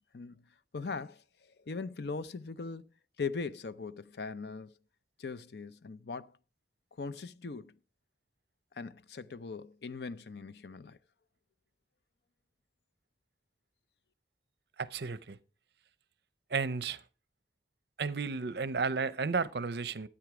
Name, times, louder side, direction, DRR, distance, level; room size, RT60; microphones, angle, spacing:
voice 1, 0.1-2.9 3.2-4.8 5.2-6.3 7.0-7.7 8.7-11.0, left 4 dB, 65° left, 0.6 m, -40 dB
voice 2, 14.8-15.4 16.5-17.0 18.0-20.1, right 4 dB, 65° right, 0.6 m, -33 dB
12.5 x 8.6 x 4.8 m
head